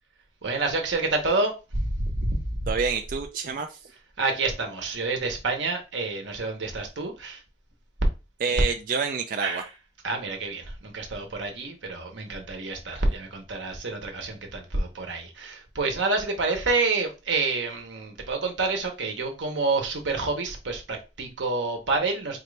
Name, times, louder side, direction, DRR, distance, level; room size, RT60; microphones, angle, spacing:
voice 1, 0.4-2.7 4.2-7.4 9.4-9.6 10.0-22.4, right 3 dB, 90° right, 1.0 m, -28 dB
voice 2, 2.7-3.9 8.4-9.6, right 5 dB, 50° right, 0.4 m, -28 dB
4.3 x 2.5 x 3.2 m
head